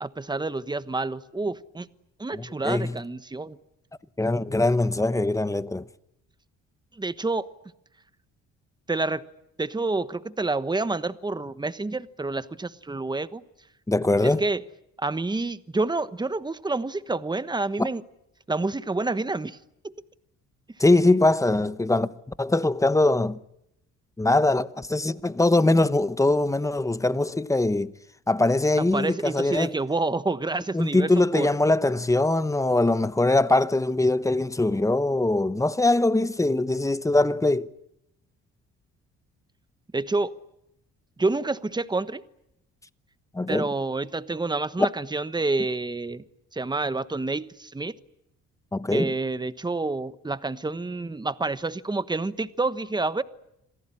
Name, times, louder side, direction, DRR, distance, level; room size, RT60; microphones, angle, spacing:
voice 1, 0.0-1.9 2.2-3.6 6.9-7.5 8.9-9.2 9.6-13.4 14.2-14.6 15.0-18.0 18.5-19.6 19.8-19.9 28.8-31.5 39.9-40.3 41.2-42.2 43.5-46.2 46.5-47.9 48.9-53.2, right 3 dB, 15° right, 1.2 m, -28 dB
voice 2, 2.3-3.0 4.2-5.9 13.9-14.4 17.8-17.9 20.8-22.1 22.4-23.4 24.2-27.9 28.3-29.7 30.7-37.7 43.3-43.7 48.7-49.1, left 2 dB, 10° left, 0.9 m, -22 dB
27.5 x 17.5 x 10.0 m
cardioid pair, 90°, 30 cm